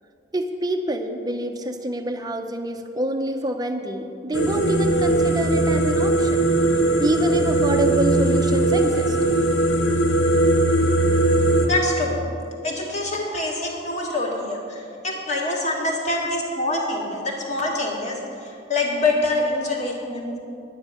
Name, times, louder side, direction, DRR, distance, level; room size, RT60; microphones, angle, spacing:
voice 1, 0.3-6.4 6.7-9.2 19.7-19.8, right 1 dB, 20° right, 5 dB, 0.7 m, -26 dB
sound 1, 4.3-11.7, right 2 dB, 90° left, 1.1 m, -19 dB
voice 2, 11.6-12.2 12.6-18.2 18.7-20.4, left 2 dB, 40° left, -1 dB, 2.0 m, -25 dB
10.5 x 9.5 x 6.4 m, 2.5 s
head